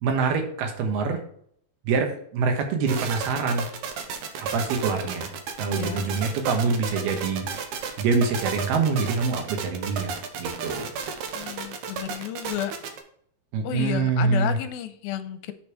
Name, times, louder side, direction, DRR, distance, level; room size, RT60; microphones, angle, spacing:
voice 1, 0.0-1.2 1.9-3.7 4.4-5.3 5.6-7.5 8.0-10.9 13.5-14.6, right 4 dB, 85° right, 4 dB, 3.3 m, -25 dB
sound 1, 2.9-13.0, right 6 dB, 70° right, 2.1 m, -33 dB
voice 2, 5.7-6.1 11.4-12.7 13.6-15.5, left 11 dB, 85° left, 10 dB, 2.4 m, -31 dB
8.2 x 5.4 x 4.7 m, 0.64 s
omnidirectional pair, 4.4 m